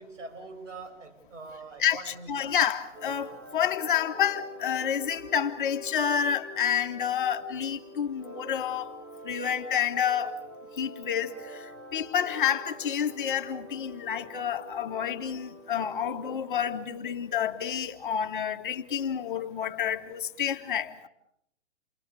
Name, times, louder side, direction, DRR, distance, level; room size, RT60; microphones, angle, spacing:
voice 1, 0.0-2.6, right 3 dB, 85° right, 7.2 m, -44 dB
voice 2, 1.8-8.9 9.2-10.4 10.8-11.6 11.9-21.1, left 9 dB, 45° left, 1.6 m, -29 dB
sound 1, 2.9-16.4, equal, 25° right, 2.1 m, -46 dB
29.5 x 23.5 x 6.9 m
hypercardioid pair, 170°, 37 cm